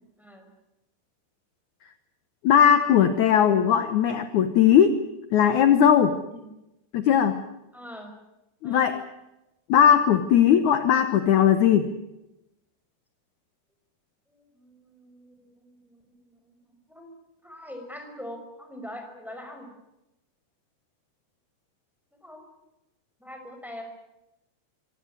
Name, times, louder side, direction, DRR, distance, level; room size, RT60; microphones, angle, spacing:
voice 1, 0.2-0.5 6.2-6.5 7.7-8.1 8.6-8.9 14.3-17.2 17.4-19.7 22.2-22.4 23.2-23.8, left 1 dB, ahead, 4 dB, 5.1 m, -43 dB
voice 2, 2.4-5.0 5.3-6.2 6.9-7.4 8.6-9.0 9.7-11.9, left 9 dB, 70° left, 10 dB, 1.9 m, -19 dB
25.0 x 18.0 x 9.7 m, 0.92 s
omnidirectional pair, 4.9 m